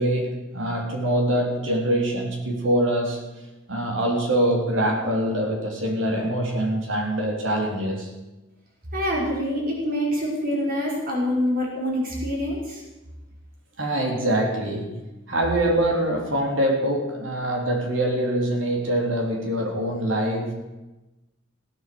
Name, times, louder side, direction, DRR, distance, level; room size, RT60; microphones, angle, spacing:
voice 1, 0.0-3.4 3.7-8.1 13.8-15.0 15.3-20.5, right 1 dB, 70° right, 1 dB, 3.6 m, -24 dB
voice 2, 8.9-12.8, equal, 50° right, -3 dB, 5.3 m, -25 dB
16.5 x 9.2 x 7.8 m, 1.1 s
head